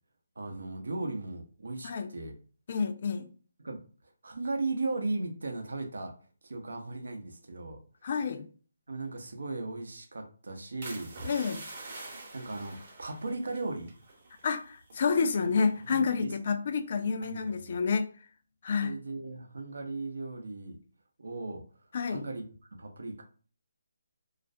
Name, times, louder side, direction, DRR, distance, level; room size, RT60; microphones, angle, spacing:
voice 1, 0.4-2.3 3.6-6.1 6.4-7.8 8.9-11.1 12.3-13.9 15.4-15.5 15.9-16.4 17.2-17.8 18.8-20.8 21.2-22.4 22.8-23.2, right 3 dB, 75° right, 0.6 m, -37 dB
voice 2, 2.7-3.3 8.0-8.5 11.2-11.7 14.4-18.1 18.6-18.9 21.9-22.2, left 5 dB, 45° left, 0.3 m, -29 dB
sound 1, 10.8-14.6 14.8-15.2 15.7-16.0, right 2 dB, 45° right, 0.8 m, -45 dB
2.4 x 2.1 x 2.5 m
hypercardioid pair, 155°, 0 cm